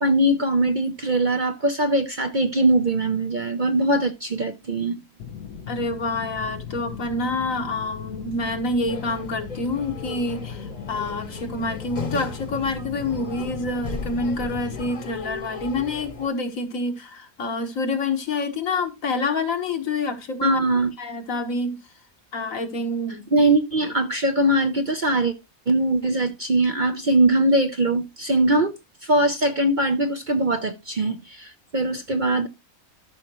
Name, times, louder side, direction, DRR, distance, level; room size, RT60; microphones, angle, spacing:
voice 1, 0.0-5.0 20.4-20.9 23.3-25.3 25.7-28.7 29.0-32.5, right 1 dB, 40° right, 0.8 m, -21 dB
sound 1, 5.2-14.9, left 7 dB, 90° left, 1.4 m, -38 dB
voice 2, 5.7-20.6 21.0-21.8 22.3-23.2, left 2 dB, 65° left, 1.8 m, -27 dB
sound 2, 8.9-16.3, left 4 dB, 35° left, 1.2 m, -36 dB
13.5 x 5.7 x 3.0 m
omnidirectional pair, 1.5 m